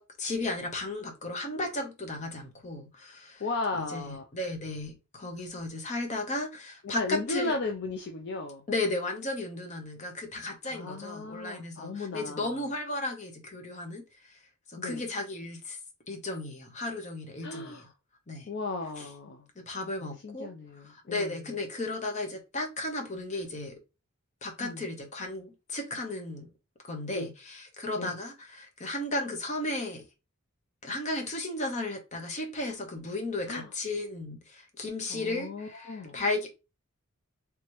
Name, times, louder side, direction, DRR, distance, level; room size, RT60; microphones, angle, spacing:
voice 1, 0.0-3.4 3.7-7.6 8.7-14.4 14.7-15.8 16.1-17.9 18.3-18.5 19.0-19.1 19.6-20.5 20.8-23.8 24.4-26.5 26.8-30.0 30.8-36.5, left 2 dB, 35° left, 0.9 m, -35 dB
voice 2, 3.4-4.2 6.8-8.6 10.7-12.6 14.8-15.0 17.4-17.9 18.5-19.5 20.0-21.4 24.6-24.8 27.1-27.3 28.0-28.1 33.5-33.7 35.1-36.2, left 3 dB, 55° left, 0.5 m, -35 dB
3.3 x 3.0 x 3.0 m
head